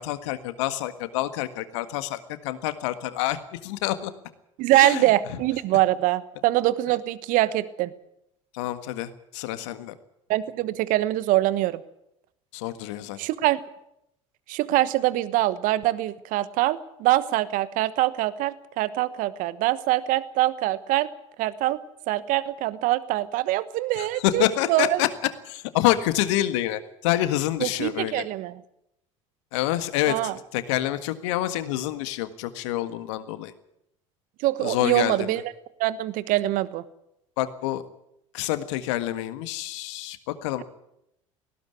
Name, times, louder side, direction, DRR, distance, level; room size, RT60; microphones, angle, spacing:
voice 1, 0.0-4.1 4.7-5.1 8.5-9.9 12.5-13.2 24.0-28.3 29.5-33.5 34.6-35.3 37.4-37.8 38.3-40.6, left 14 dB, 65° left, 11 dB, 1.7 m, -27 dB
voice 2, 4.6-7.9 10.3-11.8 13.2-13.6 14.5-21.1 21.4-21.8 22.1-25.0 27.6-28.6 30.1-30.4 34.4-35.4 35.8-36.8, right 16 dB, 55° right, 16 dB, 1.2 m, -24 dB
19.0 x 16.5 x 9.6 m, 0.81 s
figure-of-eight pair, 65°, 16 cm